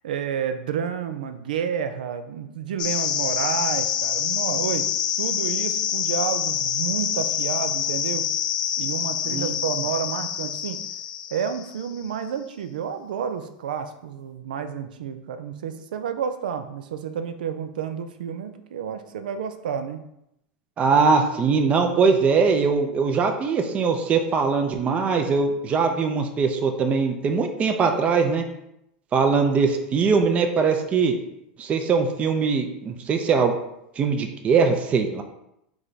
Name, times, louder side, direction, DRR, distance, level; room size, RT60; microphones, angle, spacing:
voice 1, 0.0-4.9 5.2-8.3 8.8-10.8 11.3-20.0, right 7 dB, 85° right, 9 dB, 0.5 m, -30 dB
sound 1, 2.8-12.0, left 9 dB, 80° left, 0.5 m, -26 dB
voice 2, 20.8-28.4 29.1-31.1 31.6-33.6 34.0-35.2, right 5 dB, 30° right, 5 dB, 0.5 m, -21 dB
3.4 x 3.2 x 4.0 m, 0.81 s
supercardioid pair, 120°, 5 cm